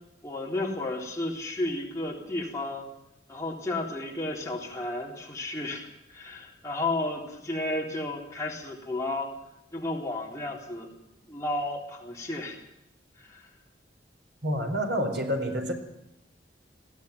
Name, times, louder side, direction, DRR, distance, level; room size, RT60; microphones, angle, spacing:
voice 1, 0.2-2.9 3.3-9.3 9.7-10.9 11.3-12.6 13.2-13.5, left 2 dB, 15° left, -1 dB, 3.9 m, -33 dB
voice 2, 14.4-15.7, equal, 70° right, 4 dB, 4.1 m, -28 dB
20.5 x 16.0 x 9.6 m, 0.86 s
head